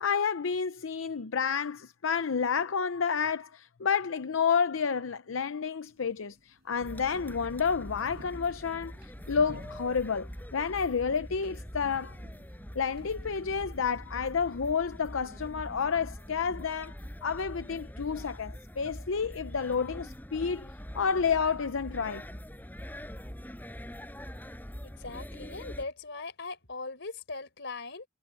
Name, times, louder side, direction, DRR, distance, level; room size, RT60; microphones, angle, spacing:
voice 1, 0.0-12.2 12.7-16.9 17.2-20.7 20.9-22.2, left 6 dB, 90° left, 0.6 m, -30 dB
sound 1, 5.8-16.9, equal, 55° right, 7.3 m, -55 dB
sound 2, 6.8-25.8, equal, 10° left, 6.3 m, -44 dB
voice 2, 25.0-28.0, left 3 dB, 65° left, 4.4 m, -40 dB
head